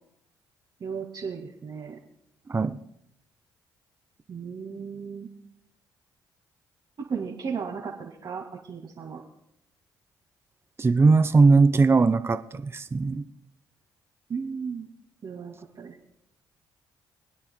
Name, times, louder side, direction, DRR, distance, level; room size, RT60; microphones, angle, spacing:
voice 1, 0.8-2.0 4.3-5.3 7.0-9.2 14.3-14.9 15.2-16.0, right 6 dB, 50° right, -3 dB, 1.9 m, -35 dB
voice 2, 10.8-13.2, right 4 dB, 25° right, 11 dB, 0.6 m, -20 dB
28.0 x 9.6 x 2.2 m, 0.78 s
hypercardioid pair, 50°, 10 cm